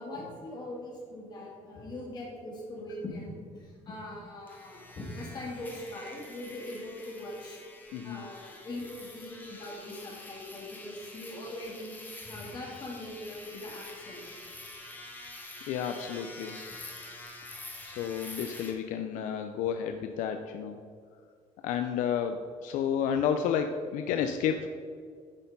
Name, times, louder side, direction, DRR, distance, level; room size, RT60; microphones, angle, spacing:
voice 1, 0.0-7.6 8.0-12.0 12.2-14.3 16.7-16.8, left 1 dB, 35° left, -3 dB, 2.1 m, -41 dB
sound 1, 4.5-18.7, left 2 dB, 15° left, 1.0 m, -47 dB
voice 2, 7.9-8.2 15.7-16.5 17.8-20.8 21.6-24.7, left 8 dB, 80° left, 6 dB, 0.5 m, -31 dB
9.8 x 4.3 x 5.4 m, 2.1 s
cardioid pair, 165°, 13 cm